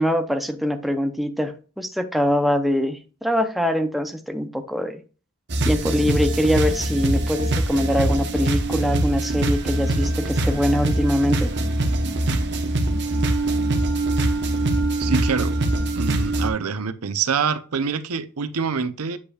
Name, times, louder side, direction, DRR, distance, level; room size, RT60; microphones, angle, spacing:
voice 1, 0.0-5.0 5.6-11.5, equal, ahead, 0.6 m, -23 dB
sound 1, 5.5-16.5, right 1 dB, 55° right, 1.0 m, -23 dB
voice 2, 15.0-15.6 16.0-19.2, right 5 dB, 85° right, 0.6 m, -25 dB
8.3 x 5.2 x 2.4 m
head